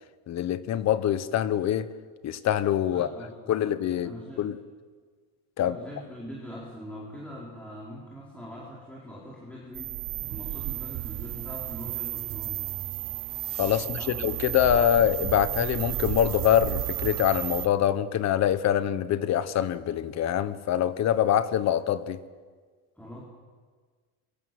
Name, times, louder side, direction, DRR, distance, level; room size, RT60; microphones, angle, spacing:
voice 1, 0.3-1.9 2.2-3.1 3.5-4.6 5.6-5.8 13.6-22.2, left 10 dB, 45° left, 14 dB, 1.3 m, -25 dB
voice 2, 2.9-4.4 5.6-10.0 10.3-12.6 13.7-14.3 14.6-14.9 23.0-23.2, equal, 5° left, -5 dB, 4.7 m, -43 dB
sound 1, 9.7-17.7, right 17 dB, 55° right, 1.1 m, -33 dB
27.5 x 23.5 x 7.9 m, 1.5 s
cardioid pair, 150°, 38 cm